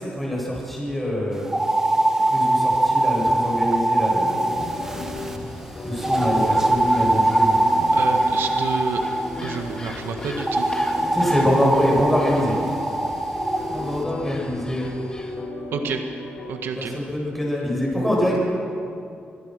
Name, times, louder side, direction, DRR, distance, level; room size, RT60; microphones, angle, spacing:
voice 1, 0.0-1.5 2.3-4.4 4.8-5.1 5.8-7.6 11.1-12.6 13.7-14.9 16.8-18.4, equal, 5° left, -3 dB, 7.6 m, -24 dB
sound 1, 1.5-5.4 6.0-9.3 10.4-13.6, right 1 dB, 15° right, 1.8 m, -22 dB
sound 2, 4.0-16.5, left 2 dB, 40° left, 6.9 m, -35 dB
sound 3, 4.5-15.5, left 1 dB, 20° left, 2.6 m, -40 dB
voice 2, 7.9-9.0 9.4-10.7 15.7-16.0 16.5-16.9, right 6 dB, 85° right, 4 dB, 1.7 m, -29 dB
26.5 x 21.0 x 6.5 m, 2.6 s
wide cardioid pair, 135°, 4 cm